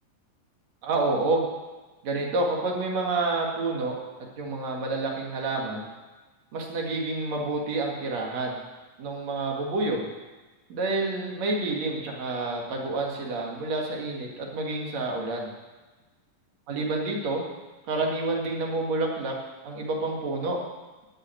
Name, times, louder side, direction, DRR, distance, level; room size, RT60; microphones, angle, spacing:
voice 1, 0.8-1.4 2.0-3.9 4.4-5.9 6.5-8.6 9.0-10.1 10.7-15.5 16.7-17.4 17.9-19.3 19.6-20.6, right 2 dB, 55° right, -1 dB, 2.9 m, -28 dB
12.5 x 5.9 x 9.2 m, 1.2 s
omnidirectional pair, 4.0 m